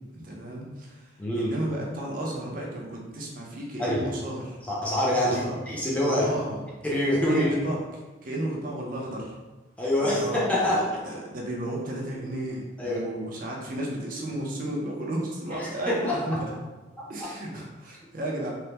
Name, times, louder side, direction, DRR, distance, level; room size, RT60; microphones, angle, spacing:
voice 1, 0.1-4.6 5.2-5.6 6.1-6.6 7.3-7.8 8.2-9.4 10.0-16.5 17.1-18.5, right 1 dB, 45° right, -2 dB, 0.5 m, -33 dB
voice 2, 1.2-1.5 3.8-4.0 4.7-6.3 6.8-7.5 9.8-10.8 12.8-13.0 15.6-16.2, left 1 dB, 5° left, -6 dB, 0.4 m, -25 dB
3.2 x 2.1 x 2.8 m, 1.2 s
head